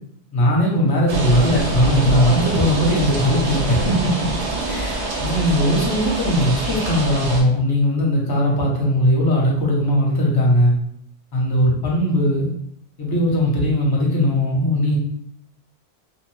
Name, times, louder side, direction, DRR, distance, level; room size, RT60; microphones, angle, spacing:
voice 1, 0.3-4.3 4.6-10.7 11.3-12.5 13.0-15.0, equal, 25° left, -2 dB, 0.6 m, -19 dB
sound 1, 1.1-7.4, right 1 dB, 90° right, 0.9 m, -25 dB
2.6 x 2.1 x 3.0 m, 0.70 s
omnidirectional pair, 1.1 m